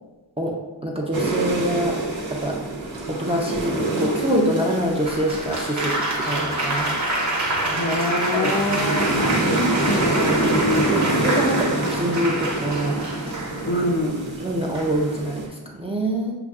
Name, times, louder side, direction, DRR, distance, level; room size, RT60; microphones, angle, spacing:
voice 1, 0.8-2.0 2.3-2.6 3.1-7.4 7.7-8.0 8.3-8.6 8.9-9.0 10.9-14.0 14.4-16.3, equal, 15° right, -2 dB, 0.5 m, -26 dB
sound 1, 1.1-15.5, right 2 dB, 75° right, 1.0 m, -27 dB
Applause, 5.1-13.9 14.7-15.1, right 1 dB, 35° right, 0.8 m, -27 dB
sound 2, 5.2-11.6, left 2 dB, 70° left, 0.9 m, -42 dB
voice 2, 7.6-11.2 13.6-14.3, left 1 dB, 40° left, 2 dB, 0.6 m, -25 dB
6.7 x 2.5 x 2.4 m, 1.2 s
wide cardioid pair, 100°, 47 cm